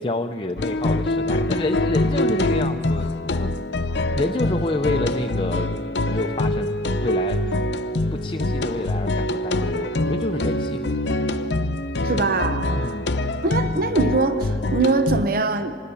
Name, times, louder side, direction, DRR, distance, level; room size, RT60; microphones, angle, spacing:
voice 1, 0.0-3.5 4.1-5.7 6.1-6.7 7.0-7.6 8.1-10.8 11.3-11.4 12.7-13.2, left 2 dB, 30° left, 5 dB, 0.6 m, -28 dB
sound 1, 0.6-15.3, left 1 dB, 75° left, 0.7 m, -24 dB
voice 2, 12.0-12.9 13.4-15.8, right 3 dB, 55° right, 10 dB, 0.7 m, -22 dB
25.0 x 20.0 x 7.0 m, 2.5 s
head